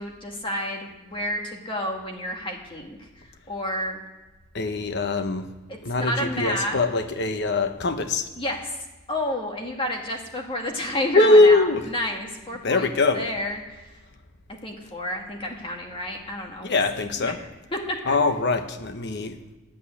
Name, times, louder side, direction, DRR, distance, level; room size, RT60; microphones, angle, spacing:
voice 1, 0.0-3.0 3.5-4.0 5.7-6.7 8.4-8.7 9.1-13.8 14.6-16.8 17.2-17.3 17.7-18.2, left 1 dB, 25° left, 1 dB, 1.8 m, -30 dB
voice 2, 4.5-5.5 5.8-8.3 11.1-11.8 12.6-13.3 16.6-17.4 18.1-19.3, left 2 dB, 55° left, 8 dB, 1.0 m, -21 dB
11.0 x 8.6 x 9.7 m, 1.1 s
head